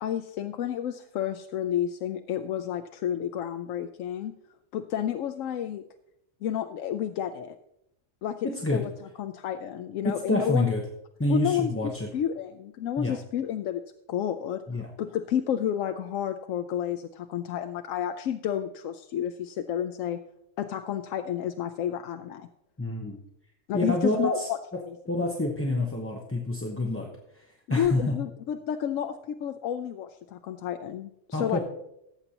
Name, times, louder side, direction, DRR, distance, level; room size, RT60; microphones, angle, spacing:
voice 1, 0.0-4.3 4.7-5.8 6.4-7.5 8.2-8.9 9.2-10.7 11.3-13.8 14.1-20.2 20.6-22.5 23.7-25.0 27.7-31.6, left 10 dB, 85° left, 7 dB, 1.0 m, -31 dB
voice 2, 8.4-8.8 10.0-10.8 11.2-12.1 13.0-13.1 14.7-14.9 22.8-23.2 23.7-24.5 25.1-27.1 27.3-28.1 31.3-31.6, left 1 dB, 10° left, 0 dB, 0.8 m, -27 dB
17.0 x 8.0 x 2.9 m, 0.81 s
omnidirectional pair, 1.3 m